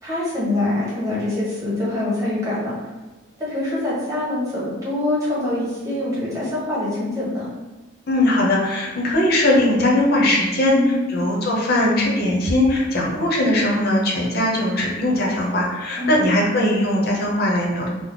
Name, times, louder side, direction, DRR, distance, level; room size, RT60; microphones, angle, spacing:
voice 1, 0.0-2.7 3.4-7.5 10.7-11.1 16.0-16.3, left 2 dB, 15° right, -9 dB, 1.2 m, -24 dB
voice 2, 8.1-17.9, left 1 dB, 45° left, -2 dB, 0.7 m, -20 dB
3.8 x 2.0 x 3.7 m, 1.2 s
head